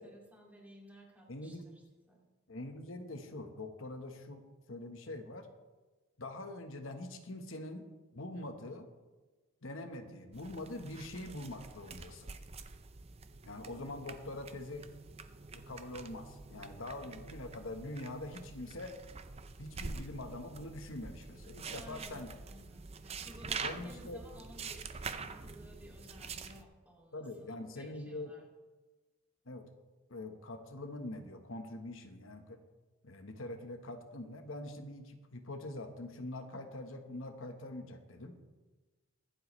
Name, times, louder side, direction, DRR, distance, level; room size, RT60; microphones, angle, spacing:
voice 1, 0.0-2.2 21.7-28.5, equal, 5° right, -3 dB, 2.5 m, -56 dB
voice 2, 1.3-1.6 2.5-5.5 6.2-7.9 8.1-8.9 9.6-12.3 13.4-14.9 15.5-19.0 19.6-22.3 23.6-24.2 27.1-28.3 29.5-29.7 30.1-32.6 33.0-38.4, left 1 dB, 70° left, 6 dB, 1.2 m, -44 dB
sound 1, 10.3-26.6, right 4 dB, 30° right, 0.6 m, -46 dB
24.0 x 8.0 x 3.2 m, 1.2 s
head